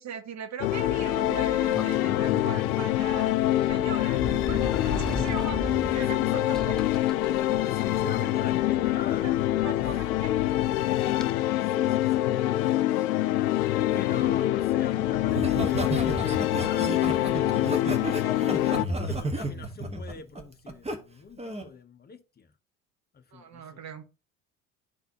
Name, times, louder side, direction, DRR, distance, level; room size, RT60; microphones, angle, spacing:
voice 1, 0.0-3.3 3.6-6.8 9.5-10.3 18.3-18.5 23.3-24.0, right 7 dB, 40° right, 1.0 m, -40 dB
sound 1, 0.6-18.9, left 14 dB, 75° left, 0.5 m, -25 dB
Sliding door, 0.7-11.3, right 1 dB, ahead, 0.4 m, -39 dB
voice 2, 5.9-6.3 7.5-9.8 11.6-12.3 13.3-17.8 18.5-22.5 23.1-23.8, left 6 dB, 20° left, 0.8 m, -42 dB
Laughter, 15.3-21.0 21.4-21.7, right 2 dB, 15° right, 1.2 m, -32 dB
11.5 x 3.9 x 2.8 m
figure-of-eight pair, 65°, 45 cm